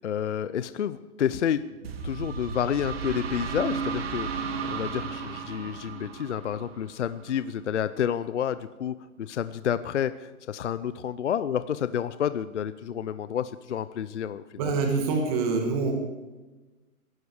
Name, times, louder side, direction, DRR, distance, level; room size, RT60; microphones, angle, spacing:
voice 1, 0.0-1.6 2.0-14.7, left 9 dB, 55° left, 14 dB, 0.7 m, -30 dB
sound 1, 1.8-7.5, right 5 dB, 40° right, 1.7 m, -34 dB
voice 2, 14.6-15.9, right 4 dB, 25° right, 2 dB, 2.3 m, -25 dB
22.5 x 12.5 x 4.9 m, 1.2 s
hypercardioid pair, 165°, 44 cm